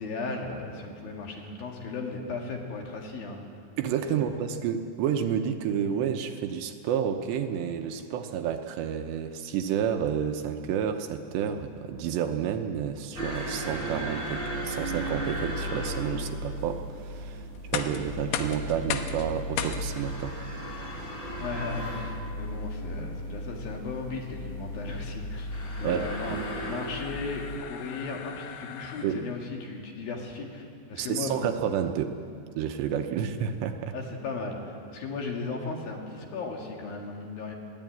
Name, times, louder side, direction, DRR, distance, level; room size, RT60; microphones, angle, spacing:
voice 1, 0.0-3.4 4.1-4.4 21.4-25.5 25.8-31.5 33.9-37.6, left 3 dB, 60° left, 0 dB, 3.5 m, -36 dB
voice 2, 3.8-17.4 17.7-20.4 25.8-26.4 29.0-29.2 30.9-32.2 32.6-33.9, right 8 dB, 80° right, 6 dB, 3.0 m, -30 dB
sound 1, 13.1-27.6, equal, 20° left, 3.8 m, -35 dB
sound 2, 17.5-29.4, left 8 dB, 80° left, 3.3 m, -39 dB
21.0 x 15.5 x 9.2 m, 2.3 s
omnidirectional pair, 5.2 m